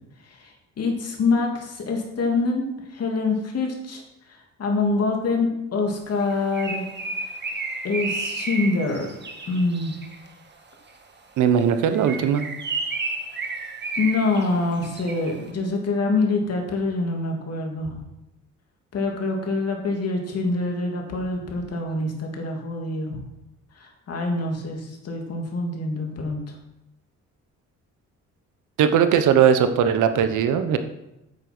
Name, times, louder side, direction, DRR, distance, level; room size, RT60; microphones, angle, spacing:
voice 1, 0.3-2.7 2.9-4.0 4.6-6.8 7.8-9.1 9.5-9.9 14.0-18.0 18.9-23.2 23.8-26.4, left 3 dB, 55° left, 1 dB, 2.9 m, -25 dB
Bird, 6.2-10.3 11.9-15.4, right 3 dB, 35° right, 1.7 m, -32 dB
voice 2, 11.4-12.5 28.8-30.8, right 8 dB, 80° right, 9 dB, 1.1 m, -19 dB
9.2 x 8.4 x 6.2 m, 0.90 s
cardioid pair, 90°, 30 cm